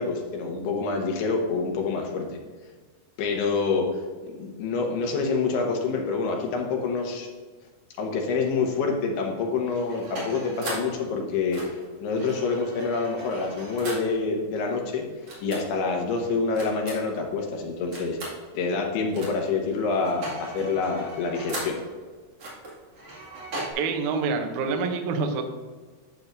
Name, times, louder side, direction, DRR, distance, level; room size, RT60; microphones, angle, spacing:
voice 1, 0.0-2.4 3.2-3.9 4.2-7.3 8.0-15.0 15.4-18.2 18.5-21.8, left 4 dB, 90° left, 1 dB, 3.2 m, -27 dB
sound 1, 9.7-11.0 11.5-14.1 15.3-15.6 16.5-17.2 17.9-18.4 19.1-19.5 19.8-21.8 22.4-23.7, right 1 dB, 45° right, 2.8 m, -38 dB
voice 2, 23.8-25.4, right 4 dB, 80° right, 5 dB, 1.7 m, -26 dB
11.5 x 7.2 x 2.6 m, 1.4 s
omnidirectional pair, 4.5 m